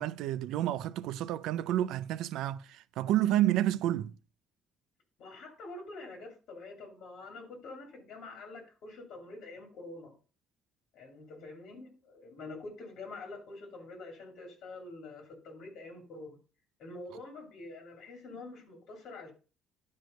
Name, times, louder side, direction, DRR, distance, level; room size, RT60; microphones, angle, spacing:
voice 1, 0.0-4.1, right 13 dB, 80° right, 0.4 m, -30 dB
voice 2, 5.2-10.1 10.9-16.4 16.8-19.3, left 2 dB, 60° left, 2.8 m, -46 dB
10.5 x 4.8 x 5.1 m
cardioid pair, 180°, 0 cm